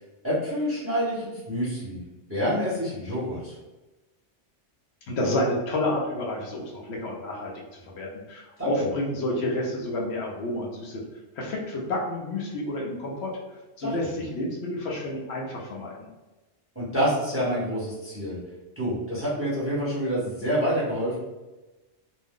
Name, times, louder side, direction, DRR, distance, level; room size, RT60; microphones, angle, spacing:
voice 1, 0.2-2.0 2.3-3.5 8.6-8.9 13.8-13.9 16.7-18.4 18.8-21.2, equal, 10° right, -9 dB, 0.9 m, -27 dB
voice 2, 5.1-7.5 7.8-11.0 11.4-13.3 13.8-16.0, left 1 dB, 65° left, -2 dB, 0.9 m, -29 dB
2.6 x 2.0 x 3.5 m, 1.1 s
omnidirectional pair, 1.2 m